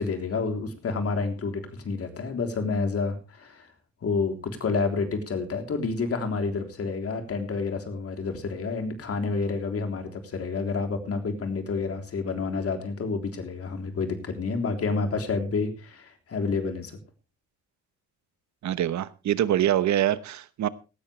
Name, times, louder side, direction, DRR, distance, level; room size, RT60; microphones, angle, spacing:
voice 1, 0.0-3.7 4.0-16.9, left 4 dB, 50° left, 3.5 m, -29 dB
voice 2, 18.6-20.7, right 11 dB, 65° right, 1.1 m, -24 dB
17.5 x 13.5 x 3.3 m
cardioid pair, 90°, 30 cm